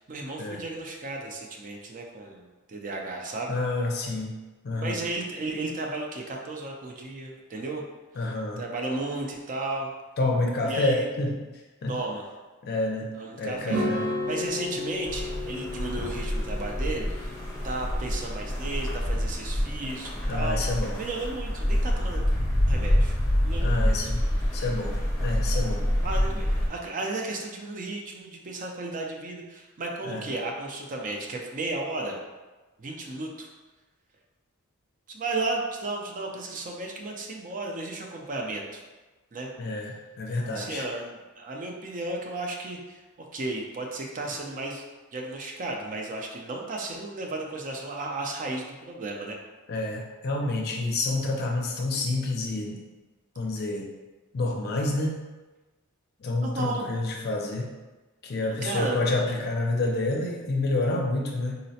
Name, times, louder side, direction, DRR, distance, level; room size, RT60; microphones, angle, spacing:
voice 1, 0.0-3.6 4.8-7.8 8.6-9.9 10.7-11.1 11.9-12.3 13.2-13.8 14.3-17.3 17.6-22.2 22.7-23.2 23.4-24.1 26.0-32.2 32.8-33.5 35.1-38.8 39.3-39.5 40.4-43.0 43.3-44.8 45.1-49.4 56.4-56.9 58.4-59.0, right 2 dB, 35° right, 0 dB, 0.4 m, -34 dB
voice 2, 3.5-4.3 4.6-5.0 8.2-8.6 10.2-11.4 11.8-11.9 12.6-13.1 13.4-14.0 20.3-20.9 23.6-24.2 24.5-24.9 25.2-25.8 30.0-30.2 39.6-40.8 49.7-52.8 53.4-53.9 54.3-55.2 56.2-57.7 58.2-61.6, left 2 dB, 45° left, 0 dB, 0.5 m, -28 dB
sound 1, 13.7-18.8, left 1 dB, 75° right, 1.5 m, -33 dB
sound 2, 15.1-26.7, equal, 10° left, 0.8 m, -27 dB
3.9 x 2.1 x 2.7 m, 1.2 s
head